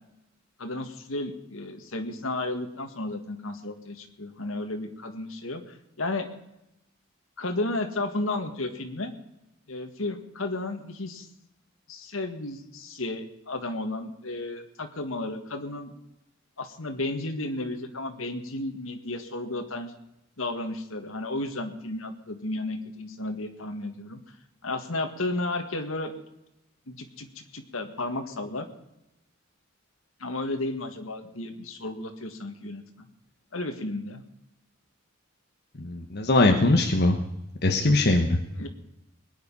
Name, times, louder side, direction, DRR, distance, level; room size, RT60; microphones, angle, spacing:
voice 1, 0.6-6.3 7.4-9.1 9.7-11.3 11.9-15.9 16.6-19.9 20.4-24.2 24.6-26.1 26.9-28.7 30.2-33.1 33.5-34.2 38.5-38.7, left 2 dB, 80° left, 5 dB, 1.9 m, -33 dB
voice 2, 35.8-37.2 37.6-38.4, left 2 dB, 50° left, 3 dB, 1.3 m, -21 dB
21.5 x 9.8 x 5.6 m, 0.86 s
head